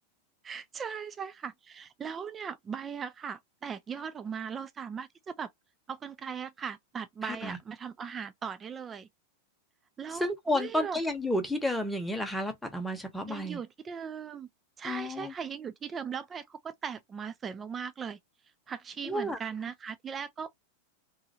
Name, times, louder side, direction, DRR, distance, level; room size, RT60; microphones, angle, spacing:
voice 1, 0.4-5.5 5.9-9.1 10.0-11.0 13.3-14.5 14.8-18.2 18.7-20.5, right 7 dB, 20° right, 0.4 m, -39 dB
voice 2, 7.2-7.6 10.1-13.6 14.8-15.3 19.0-19.4, left 1 dB, ahead, 0.9 m, -31 dB
3.1 x 2.6 x 2.7 m
figure-of-eight pair, 90°, 0 cm